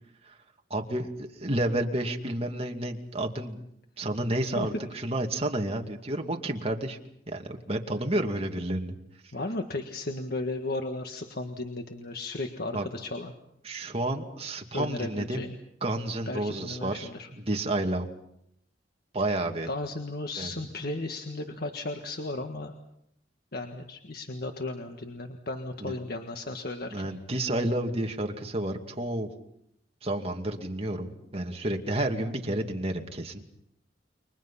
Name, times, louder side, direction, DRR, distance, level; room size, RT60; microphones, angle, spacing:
voice 1, 0.7-3.6 4.0-7.0 7.3-8.9 12.7-12.9 13.6-15.4 15.8-18.1 19.1-19.7 20.4-20.7 25.8-26.0 26.9-29.3 30.0-33.4, right 1 dB, 35° right, 3 dB, 2.4 m, -30 dB
voice 2, 9.3-13.3 14.7-15.6 16.3-17.3 19.6-22.7 23.5-27.1, left 2 dB, 60° left, 5 dB, 1.7 m, -35 dB
30.0 x 23.5 x 5.8 m, 0.76 s
head